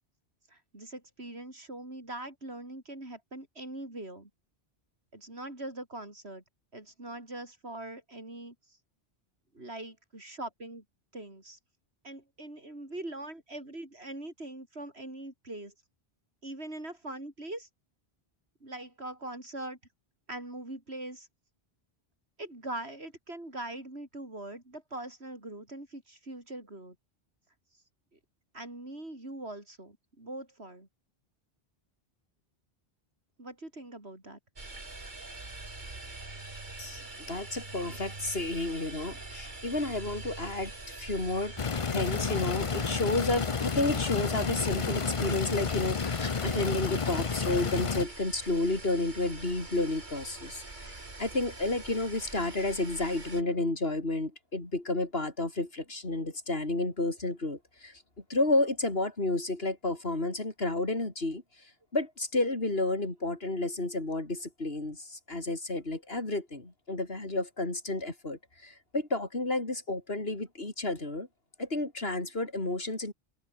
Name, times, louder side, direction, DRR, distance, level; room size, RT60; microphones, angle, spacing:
voice 1, 0.5-4.3 5.1-6.4 6.7-8.8 9.5-10.8 11.1-11.6 12.0-15.7 16.4-17.7 18.6-19.8 20.3-21.3 22.4-26.9 27.7-27.8 28.1-28.2 28.5-30.9 33.4-34.4, right 1 dB, 90° right, 6.4 m, -42 dB
sound 1, 34.6-53.4, right 2 dB, 50° right, 3.0 m, -44 dB
voice 2, 36.8-41.5 41.9-58.0 58.3-61.4 61.9-71.3 71.6-73.1, left 2 dB, 70° left, 4.5 m, -31 dB
sound 2, 41.6-48.0, left 5 dB, 35° left, 0.8 m, -31 dB
omnidirectional pair, 1.1 m